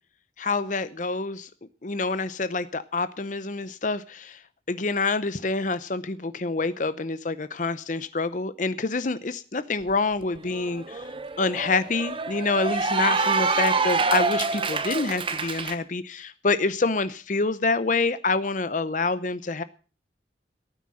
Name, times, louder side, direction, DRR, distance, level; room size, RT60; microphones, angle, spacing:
voice 1, 0.4-1.5 1.8-4.4 4.7-11.1 11.4-19.6, left 3 dB, 45° left, 14 dB, 0.7 m, -27 dB
Cheering / Applause, 9.9-10.0 10.3-15.8, right 4 dB, 30° right, 1.1 m, -26 dB
15.5 x 9.4 x 6.3 m, 0.37 s
head